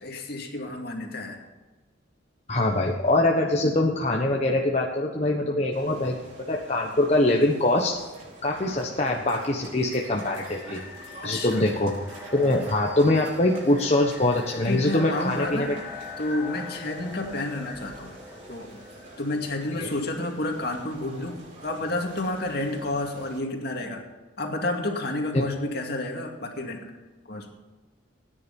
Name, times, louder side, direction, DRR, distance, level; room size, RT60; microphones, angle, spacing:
voice 1, 0.0-1.4 5.4-5.6 8.7-8.9 11.2-11.6 14.6-15.7 16.2-18.1 18.5-18.8 19.2-24.0 24.4-26.9 27.3-27.5, left 2 dB, 55° left, 2 dB, 2.4 m, -30 dB
voice 2, 2.5-6.1 6.5-7.9 8.4-10.8 11.2-11.9 12.3-15.7 19.8-19.9 25.3-25.4, left 1 dB, 35° left, -1 dB, 1.2 m, -23 dB
sound 1, 5.7-23.4, right 2 dB, 45° right, 4.8 m, -46 dB
sound 2, 9.8-20.6, left 4 dB, 10° right, 2.0 m, -43 dB
17.0 x 10.0 x 5.4 m, 1.2 s
head